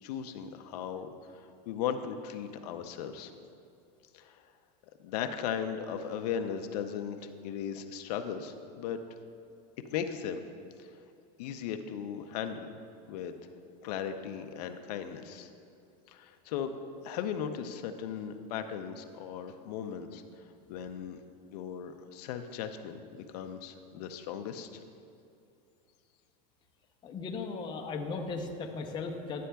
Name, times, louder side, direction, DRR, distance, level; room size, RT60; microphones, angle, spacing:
voice 1, 0.0-3.3 4.1-4.4 5.0-9.0 9.9-10.4 10.8-10.9 11.4-12.7 13.1-13.3 13.8-15.5 16.1-16.7 17.0-20.2 20.7-21.2 21.5-23.0 23.3-24.8, left 8 dB, 70° left, 7 dB, 0.5 m, -37 dB
voice 2, 27.0-29.5, left 4 dB, 20° left, 2 dB, 0.6 m, -37 dB
11.5 x 8.3 x 2.3 m, 2.6 s
supercardioid pair, 150°, 21 cm